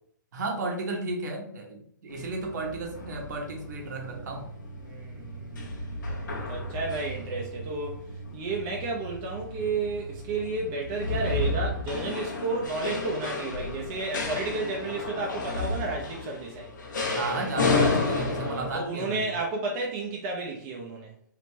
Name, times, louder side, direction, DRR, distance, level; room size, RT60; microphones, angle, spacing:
voice 1, 0.3-4.5 17.1-19.3, right 3 dB, 60° right, 2 dB, 1.1 m, -33 dB
sound 1, 2.1-18.7, left 2 dB, 75° left, 1.0 m, -32 dB
voice 2, 4.8-8.0 8.3-16.7 18.4-21.1, right 3 dB, 30° right, -1 dB, 0.7 m, -32 dB
3.4 x 2.9 x 3.1 m, 0.65 s
hypercardioid pair, 130°, 11 cm